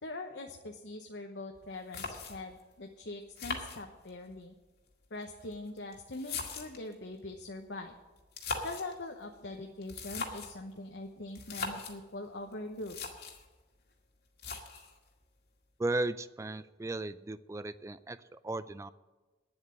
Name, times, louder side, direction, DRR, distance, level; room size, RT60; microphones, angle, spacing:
voice 1, 0.0-4.5 5.1-8.0 8.6-13.0, left 2 dB, 75° left, 3 dB, 1.0 m, -43 dB
sound 1, 1.5-1.6 1.9-2.6 3.4-4.3 5.2-6.9 8.2-8.9 9.8-10.6 11.3-12.0 12.5-12.6 12.8-13.5 14.4-15.0, left 4 dB, 60° left, 2.0 m, -40 dB
voice 2, 15.8-18.9, right 2 dB, 15° right, 14 dB, 0.3 m, -36 dB
9.9 x 8.0 x 9.6 m, 1.2 s
head